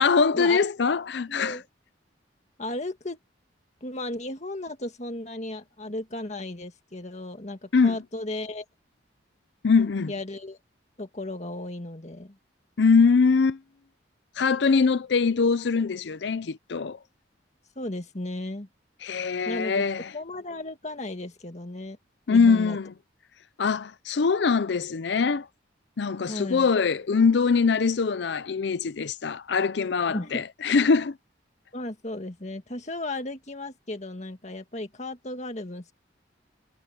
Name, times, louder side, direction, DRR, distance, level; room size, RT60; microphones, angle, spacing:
voice 1, 0.0-1.5 7.7-8.0 9.6-10.1 12.8-13.6 14.4-17.0 19.0-20.1 22.3-22.9 23.6-25.5 26.0-31.1, left 5 dB, 65° left, 0.5 m, -22 dB
voice 2, 1.3-1.7 2.6-3.2 3.8-8.6 10.1-10.6 11.0-12.4 17.8-18.7 19.5-19.8 20.1-22.0 22.3-22.8 26.3-26.7 30.1-30.4 31.7-35.9, left 1 dB, 35° left, 2.0 m, -35 dB
head